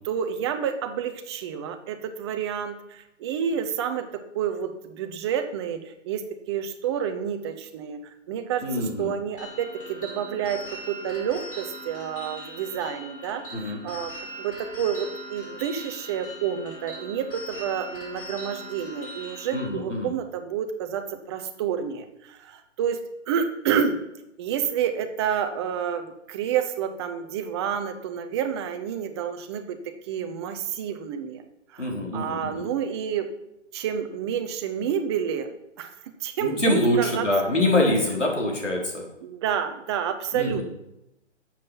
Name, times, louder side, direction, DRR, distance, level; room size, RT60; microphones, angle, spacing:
voice 1, 0.0-14.1 14.4-23.0 23.3-24.0 24.4-31.4 31.7-33.3 33.7-35.5 35.8-35.9 36.2-37.3 39.2-40.6, right 8 dB, 20° right, 7 dB, 0.9 m, -29 dB
voice 2, 8.6-9.1 13.5-13.8 19.5-20.1 31.8-32.7 36.4-39.0 40.3-40.6, left 1 dB, 75° left, -1 dB, 4.3 m, -25 dB
sound 1, 9.4-19.7, equal, 45° left, 3.5 m, -40 dB
11.5 x 7.7 x 5.9 m, 0.88 s
figure-of-eight pair, 130°, 37 cm